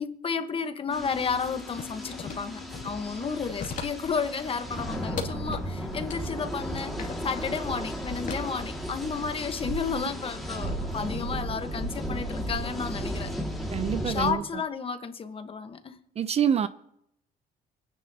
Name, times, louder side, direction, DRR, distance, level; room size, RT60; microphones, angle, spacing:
voice 1, 0.0-13.3 14.0-16.0, left 6 dB, 35° left, 1.1 m, -32 dB
sound 1, 0.8-14.2, left 3 dB, 90° right, 5.7 m, -47 dB
sound 2, 0.9-14.3, equal, ahead, 2.0 m, -35 dB
sound 3, 1.7-3.1 3.4-4.1 4.5-5.7 6.1-6.2 6.7-7.4 8.3-9.2 9.6-9.7, left 6 dB, 50° left, 2.4 m, -37 dB
voice 2, 13.7-14.4 16.2-16.7, right 8 dB, 40° right, 0.5 m, -26 dB
24.5 x 9.9 x 2.8 m
cardioid pair, 110°, 17 cm